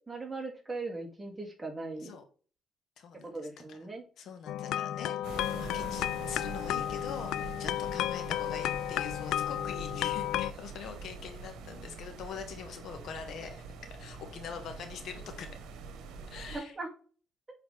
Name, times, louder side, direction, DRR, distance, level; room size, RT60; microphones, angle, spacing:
voice 1, 0.1-2.1 3.2-4.0 16.5-16.9, right 3 dB, 20° right, 0 dB, 2.3 m, -39 dB
voice 2, 3.0-3.3 3.7-3.8 4.2-13.6 14.0-15.5 16.3-16.7, left 6 dB, 75° left, 7 dB, 1.2 m, -43 dB
sound 1, 4.5-10.5, left 12 dB, 90° left, 0.3 m, -33 dB
sound 2, 5.2-16.6, right 4 dB, 85° right, 1.1 m, -45 dB
7.8 x 4.1 x 3.3 m, 0.41 s
cardioid pair, 90°, 0 cm